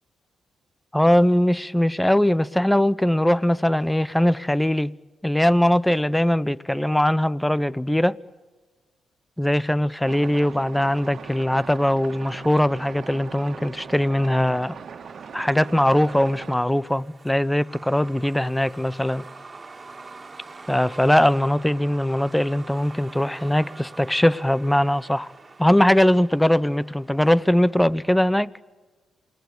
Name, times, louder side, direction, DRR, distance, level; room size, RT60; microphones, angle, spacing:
voice 1, 0.9-4.9 5.2-8.2 9.4-14.8 15.3-19.2 20.7-25.3 25.6-28.5, left 1 dB, 5° left, 0.9 m, -21 dB
sound 1, 10.0-16.6, right 7 dB, 60° right, 1.9 m, -40 dB
Truck, 10.9-28.3, right 3 dB, 30° right, 3.0 m, -46 dB
27.5 x 20.0 x 8.7 m
supercardioid pair, 60°, 0 cm